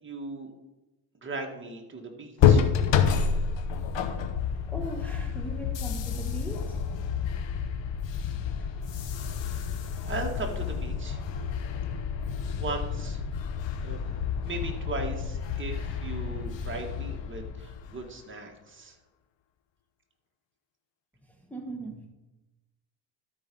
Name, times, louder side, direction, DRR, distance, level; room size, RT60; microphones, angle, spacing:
voice 1, 0.0-0.5 1.2-2.6 10.1-11.2 12.3-13.2 13.8-14.0 14.4-19.0, right 3 dB, 25° right, 1 dB, 1.9 m, -37 dB
sound 1, 2.4-18.1, left 7 dB, 70° left, 1.0 m, -29 dB
voice 2, 4.7-7.0 21.3-22.1, right 1 dB, 5° left, 1 dB, 1.4 m, -39 dB
12.5 x 4.9 x 5.4 m, 1.0 s
cardioid pair, 85°, 47 cm